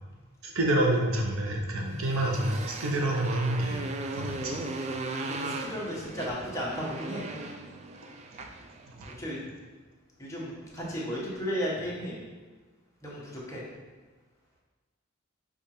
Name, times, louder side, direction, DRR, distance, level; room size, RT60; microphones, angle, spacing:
voice 1, 0.4-3.8 4.1-4.6 8.9-9.2, right 1 dB, 80° right, 1 dB, 0.7 m, -28 dB
Motorcycle, 1.9-9.3, right 2 dB, 30° right, 0.3 m, -38 dB
voice 2, 5.2-7.2 9.2-9.4 10.2-12.2 13.0-13.6, equal, 15° left, -6 dB, 1.0 m, -34 dB
5.1 x 2.4 x 4.2 m, 1.3 s
head